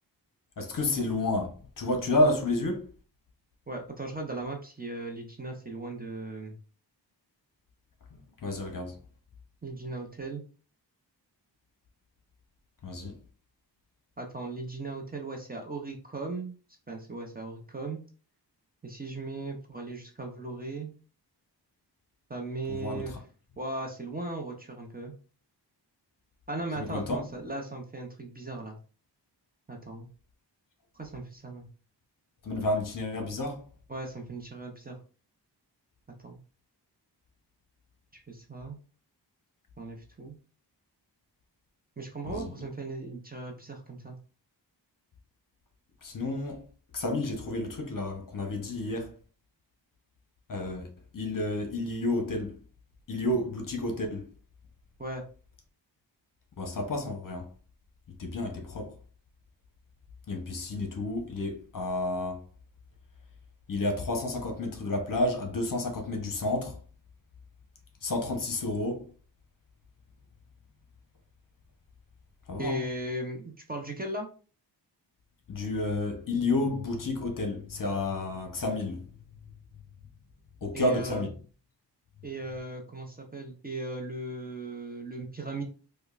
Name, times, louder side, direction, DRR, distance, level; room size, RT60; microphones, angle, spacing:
voice 1, 0.6-2.9 8.4-8.9 12.8-13.2 22.7-23.0 26.8-27.2 32.4-33.6 42.2-42.5 46.0-46.6 46.9-49.1 50.5-50.9 51.1-52.6 53.1-54.3 56.6-57.4 58.2-58.9 60.3-62.4 63.7-66.8 68.0-69.0 72.5-72.8 75.5-79.0 80.6-81.3, left 2 dB, 50° left, 0.8 m, -30 dB
voice 2, 3.7-6.6 9.6-10.4 14.2-16.5 16.9-18.0 18.8-20.9 22.3-23.2 23.6-25.1 26.5-28.8 29.7-30.1 30.9-31.7 33.9-35.0 36.2-36.4 38.1-38.8 39.8-40.4 42.0-44.2 55.0-55.2 72.6-74.3 80.7-81.3 82.2-85.6, right 2 dB, 20° right, 0.6 m, -37 dB
5.1 x 2.2 x 2.4 m
wide cardioid pair, 135°, 42 cm